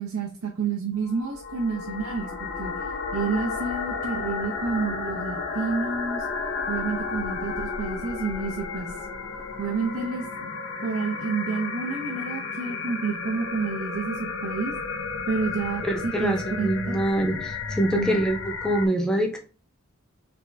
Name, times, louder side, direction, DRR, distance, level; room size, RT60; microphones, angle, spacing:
voice 1, 0.0-2.8 3.1-6.3 6.7-8.9 9.6-10.5 10.8-14.7 15.3-17.0 17.9-18.2, right 4 dB, 75° right, -2 dB, 0.6 m, -29 dB
sound 1, 1.0-18.9, left 4 dB, 60° left, 0.6 m, -33 dB
voice 2, 15.8-19.4, right 1 dB, 5° left, 2 dB, 0.5 m, -25 dB
3.4 x 2.5 x 3.1 m, 0.36 s
head